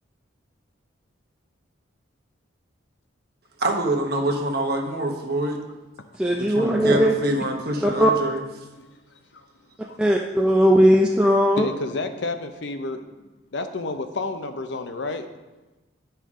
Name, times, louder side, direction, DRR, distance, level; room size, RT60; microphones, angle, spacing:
voice 1, 3.6-5.6 6.4-8.4, right 1 dB, 50° right, 2 dB, 1.1 m, -25 dB
voice 2, 6.2-7.1 7.8-8.1 10.0-11.7, equal, 5° right, -1 dB, 0.4 m, -18 dB
voice 3, 11.6-13.1 13.5-15.3, left 3 dB, 60° left, 8 dB, 0.6 m, -30 dB
10.0 x 5.7 x 3.7 m, 1.1 s
head